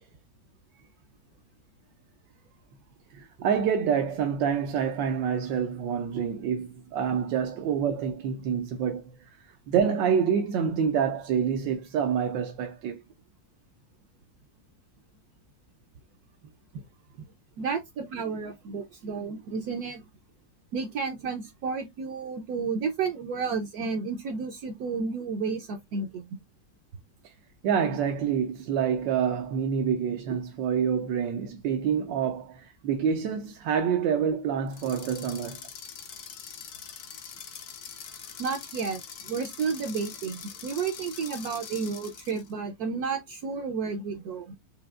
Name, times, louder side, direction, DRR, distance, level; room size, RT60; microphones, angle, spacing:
voice 1, 3.1-9.0 9.7-13.0 27.2-27.3 27.6-35.6, right 7 dB, 85° right, 1.3 m, -27 dB
voice 2, 17.6-20.0 20.7-26.3 38.4-44.5, right 5 dB, 70° right, 1.0 m, -32 dB
sound 1, 34.7-42.5, left 7 dB, 65° left, 1.3 m, -43 dB
5.0 x 2.7 x 2.3 m
omnidirectional pair, 1.9 m